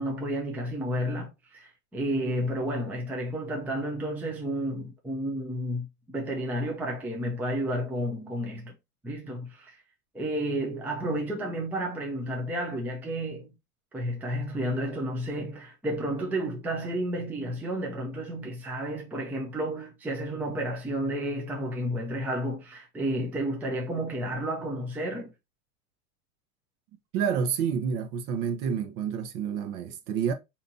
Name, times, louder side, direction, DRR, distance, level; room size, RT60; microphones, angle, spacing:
voice 1, 0.0-8.7 9.0-9.8 10.1-13.5 13.9-25.3, right 1 dB, 5° right, 0.5 m, -31 dB
voice 2, 27.1-30.3, right 7 dB, 45° right, 0.9 m, -29 dB
5.0 x 2.9 x 2.7 m
supercardioid pair, 135°, 46 cm